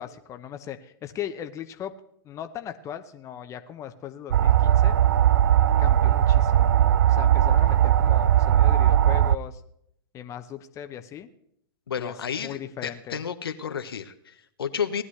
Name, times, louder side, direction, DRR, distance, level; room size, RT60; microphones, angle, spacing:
voice 1, 0.0-1.9 2.2-5.0 5.8-6.8 7.1-9.6 10.1-11.3 12.0-13.2, left 10 dB, 25° left, 8 dB, 0.9 m, -38 dB
sound 1, 4.3-9.4, right 11 dB, 70° right, 0.4 m, -19 dB
voice 2, 11.9-15.0, left 7 dB, 85° left, 9 dB, 1.0 m, -32 dB
18.5 x 11.0 x 3.2 m, 0.71 s
hypercardioid pair, 120°, 12 cm